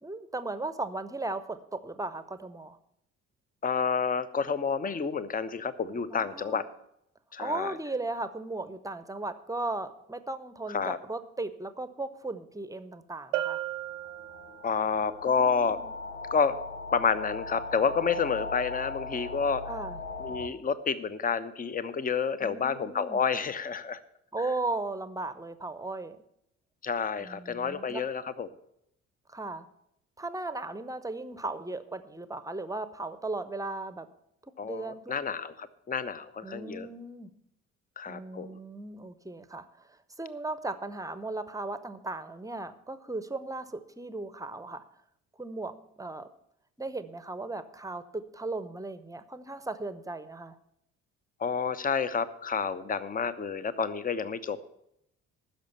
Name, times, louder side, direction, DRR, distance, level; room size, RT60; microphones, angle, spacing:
voice 1, 0.0-2.8 6.1-6.7 7.4-13.6 15.2-15.9 19.7-20.0 22.4-23.2 24.3-26.2 27.2-28.0 29.3-29.7 30.2-34.1 34.6-35.1 36.4-37.3 38.1-44.8 45.4-46.3 46.8-50.6, right 2 dB, 10° right, 13 dB, 0.8 m, -37 dB
voice 2, 3.6-6.6 7.3-7.7 10.7-11.0 14.6-15.8 16.3-16.6 16.9-19.6 20.2-24.0 26.8-28.5 34.6-36.9 38.0-38.6 51.4-54.6, left 6 dB, 20° left, 14 dB, 0.8 m, -29 dB
Bell, 13.3-14.9, right 13 dB, 80° right, 0.6 m, -34 dB
sound 1, 13.7-20.5, left 3 dB, 85° left, 0.8 m, -39 dB
10.0 x 6.4 x 8.4 m, 0.77 s
figure-of-eight pair, 50°, 38 cm